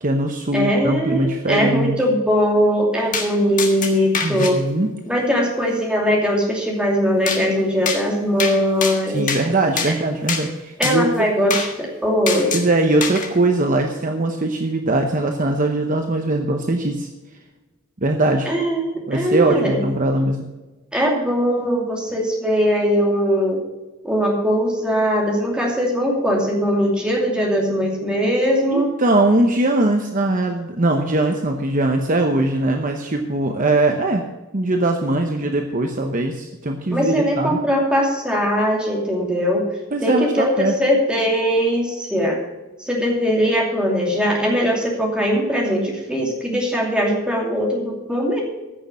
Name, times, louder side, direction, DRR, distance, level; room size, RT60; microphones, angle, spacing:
voice 1, 0.0-2.0 4.2-4.9 9.1-11.1 12.5-17.1 18.0-18.5 19.1-20.5 28.7-34.2 34.5-37.6 39.9-40.8, right 2 dB, 35° right, 4 dB, 0.8 m, -21 dB
voice 2, 0.5-4.6 5.1-9.2 10.8-12.6 18.5-19.8 20.9-23.6 24.0-28.9 36.9-39.6 40.0-42.4 42.8-48.4, equal, 5° right, -2 dB, 2.7 m, -20 dB
sound 1, 3.1-3.3 3.6-4.5 7.3-7.4 7.9-8.0 8.4-8.6 8.8-9.4 9.8-9.9 10.3-10.4 10.8-11.0 11.5-11.7 12.3-12.7 13.0-13.3, left 5 dB, 35° left, 1.6 m, -24 dB
15.0 x 6.6 x 6.1 m, 1.2 s
head